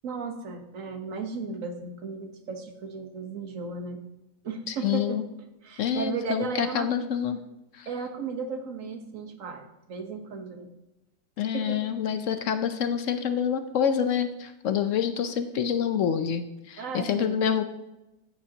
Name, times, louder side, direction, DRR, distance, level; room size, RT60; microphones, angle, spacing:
voice 1, 0.0-4.0 4.4-5.2 5.6-6.9 7.9-10.7 11.5-11.8 16.8-17.4, right 5 dB, 50° right, 6 dB, 1.4 m, -35 dB
voice 2, 4.7-5.2 5.8-7.4 7.7-7.9 11.4-17.6, left 8 dB, 65° left, 9 dB, 0.8 m, -27 dB
14.0 x 9.1 x 2.9 m, 0.95 s
omnidirectional pair, 1.9 m